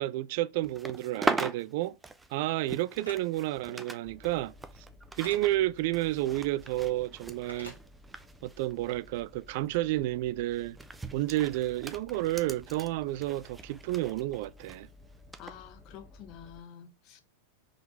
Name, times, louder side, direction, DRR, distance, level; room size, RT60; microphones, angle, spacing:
voice 1, 0.0-2.0 2.3-4.5 5.2-7.7 8.4-10.8 11.1-14.9, right 16 dB, 50° right, 0.3 m, -31 dB
sound 1, 0.6-4.0 4.2-9.2 9.5-9.7 10.5-14.8 15.3-15.5, right 3 dB, 10° right, 0.6 m, -39 dB
sound 2, 3.0-3.2 5.2-5.4 7.5-7.8, left 1 dB, 80° left, 2.2 m, -45 dB
sound 3, 4.0-16.6, left 1 dB, 5° left, 1.1 m, -55 dB
voice 2, 15.4-17.2, left 9 dB, 35° left, 1.1 m, -48 dB
4.8 x 3.9 x 5.2 m
figure-of-eight pair, 90°, 0 cm